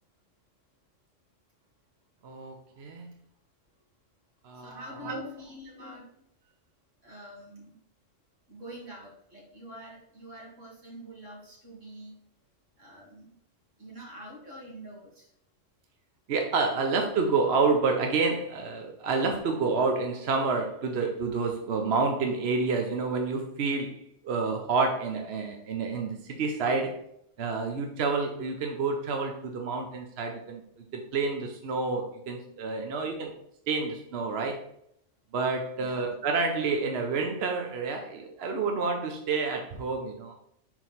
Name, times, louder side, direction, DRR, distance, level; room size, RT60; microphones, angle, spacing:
voice 1, 2.2-3.1 4.4-5.3 5.8-5.9 16.3-27.0 27.4-33.3 33.7-34.6 35.3-40.3, right 4 dB, 60° right, 3 dB, 0.9 m, -29 dB
voice 2, 4.5-6.1 7.0-7.8 8.5-12.1 12.8-13.3 13.8-15.3 35.8-36.1, equal, 80° right, -4 dB, 2.5 m, -46 dB
6.0 x 4.4 x 4.0 m, 0.73 s
omnidirectional pair, 1.3 m